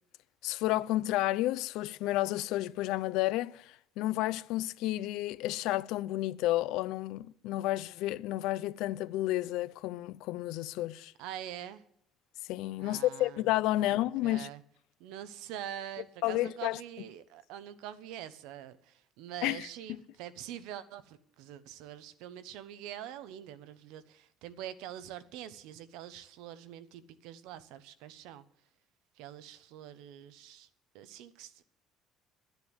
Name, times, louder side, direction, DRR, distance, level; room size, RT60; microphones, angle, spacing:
voice 1, 0.4-11.1 12.5-14.5 16.2-16.8 19.4-20.0, left 16 dB, 70° left, 0.5 m, -31 dB
voice 2, 11.2-11.8 12.8-13.4 13.8-13.9 14.2-14.6 15.0-28.4 29.2-30.7 30.9-31.6, right 11 dB, 80° right, 1.0 m, -45 dB
11.5 x 10.5 x 8.0 m
cardioid pair, 180°, 0 cm